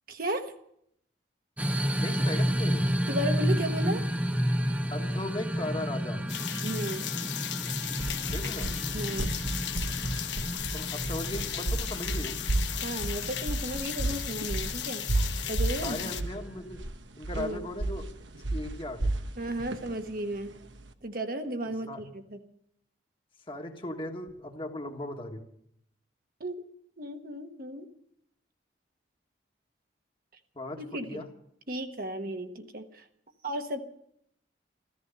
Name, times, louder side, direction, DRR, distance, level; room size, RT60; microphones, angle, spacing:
voice 1, 0.1-0.5 3.1-4.1 6.6-7.1 8.9-9.3 12.8-15.0 15.5-16.1 17.3-17.7 19.4-20.5 21.0-22.4 26.4-26.5 27.0-27.9 30.8-31.2 31.7-33.0 33.4-33.8, right 1 dB, 50° right, 1.2 m, -34 dB
sound 1, 1.6-16.6, equal, 10° right, 0.7 m, -32 dB
voice 2, 2.0-2.9 4.9-6.2 8.3-8.8 10.7-12.4 15.8-16.8 17.2-18.1 18.3-19.1 21.6-22.0 23.5-25.4 30.5-31.3, left 1 dB, 25° left, 1.6 m, -37 dB
sound 2, 6.3-16.2, left 11 dB, 75° left, 1.0 m, -36 dB
sound 3, 7.6-20.9, right 2 dB, 75° right, 1.2 m, -33 dB
15.0 x 14.0 x 6.8 m
head